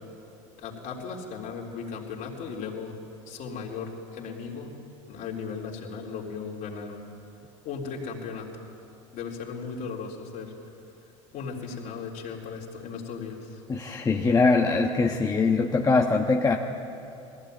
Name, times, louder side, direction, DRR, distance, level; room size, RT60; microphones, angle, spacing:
voice 1, 0.6-2.9 3.3-4.7 5.1-7.0 7.6-8.5 9.1-10.5 11.3-13.6, left 5 dB, 55° left, -1 dB, 3.8 m, -36 dB
voice 2, 13.7-16.6, left 3 dB, 20° left, 1 dB, 1.3 m, -22 dB
19.5 x 15.5 x 9.2 m, 2.7 s
hypercardioid pair, 85°, 16 cm